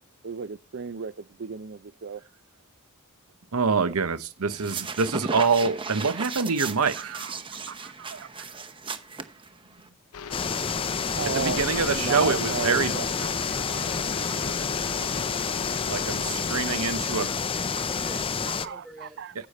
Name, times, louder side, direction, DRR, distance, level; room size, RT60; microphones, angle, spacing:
voice 1, 0.2-2.2 7.0-8.5 11.1-11.6 11.9-14.0 14.3-14.5 17.8-17.9 18.4-19.5, right 6 dB, 55° right, 0.5 m, -35 dB
voice 2, 3.5-7.1 11.3-13.0 14.4-14.5 15.9-17.3, right 5 dB, 85° right, 0.9 m, -25 dB
sound 1, 4.5-9.9, right 4 dB, 25° right, 0.9 m, -36 dB
sound 2, 10.1-16.6, left 6 dB, 85° left, 0.7 m, -39 dB
sound 3, 10.3-18.7, left 5 dB, 25° left, 0.5 m, -29 dB
voice 3, 17.0-19.2, right 2 dB, ahead, 4.0 m, -48 dB
10.0 x 8.4 x 4.2 m
head